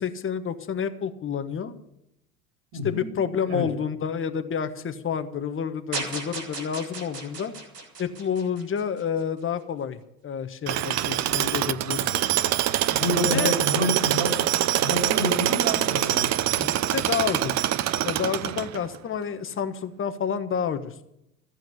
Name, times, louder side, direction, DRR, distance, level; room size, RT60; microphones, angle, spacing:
voice 1, 0.0-1.7 2.8-7.5 8.0-12.2 13.2-13.6 16.5-17.5 18.0-20.9, left 7 dB, 25° left, 9 dB, 1.4 m, -29 dB
voice 2, 2.7-3.1 3.5-3.7 12.9-14.4 14.8-16.3, left 1 dB, 60° right, 3 dB, 3.9 m, -28 dB
sound 1, 5.9-9.2, right 3 dB, 90° right, 2.8 m, -36 dB
Tools, 10.7-19.0, right 13 dB, 35° right, 0.7 m, -24 dB
14.5 x 7.9 x 9.4 m, 0.80 s
hypercardioid pair, 75°, 46 cm